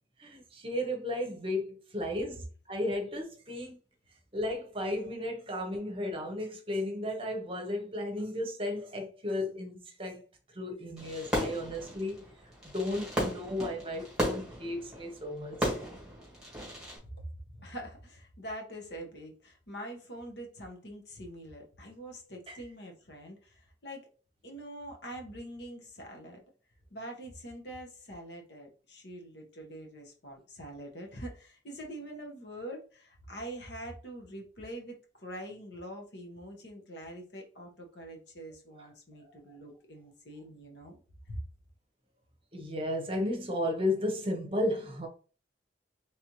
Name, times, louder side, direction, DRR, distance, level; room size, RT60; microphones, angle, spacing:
voice 1, 0.2-3.8 4.3-10.2 10.5-12.3 12.7-15.7 22.5-22.6 38.8-38.9 42.5-45.1, left 1 dB, 30° right, 0.9 m, -34 dB
Fireworks, 11.0-17.0, equal, 5° right, 1.6 m, -35 dB
voice 2, 17.0-24.1 24.4-26.4 26.9-41.4, right 1 dB, 65° left, 1.3 m, -44 dB
4.2 x 3.3 x 3.0 m
head